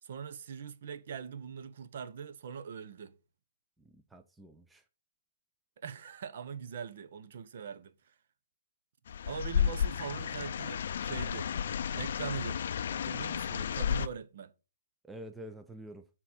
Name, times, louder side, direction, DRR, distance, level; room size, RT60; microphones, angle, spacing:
voice 1, 0.0-3.2 5.8-8.1 9.2-11.5 11.9-12.6 12.9-14.5, right 7 dB, 55° right, 0.9 m, -42 dB
voice 2, 3.8-4.8 15.0-16.1, right 1 dB, 5° right, 0.5 m, -48 dB
sound 1, 9.1-14.1, left 8 dB, 60° left, 0.4 m, -32 dB
6.8 x 3.8 x 6.0 m
hypercardioid pair, 150°, 0 cm